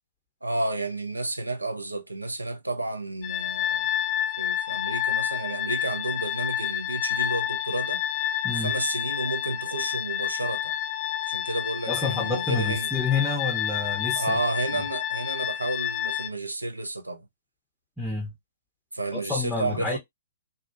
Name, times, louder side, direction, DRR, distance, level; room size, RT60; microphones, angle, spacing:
voice 1, 0.4-3.9 4.4-8.0 8.5-10.7 11.3-12.9 14.1-17.3 18.9-20.0, right 2 dB, 90° right, 0.5 m, -31 dB
sound 1, 3.2-16.3, left 11 dB, 30° left, 0.3 m, -29 dB
voice 2, 8.4-8.8 11.9-14.4 14.7-14.8 18.0-18.3 19.1-20.0, left 4 dB, ahead, 0.7 m, -29 dB
2.4 x 2.0 x 2.6 m
figure-of-eight pair, 120°, 0 cm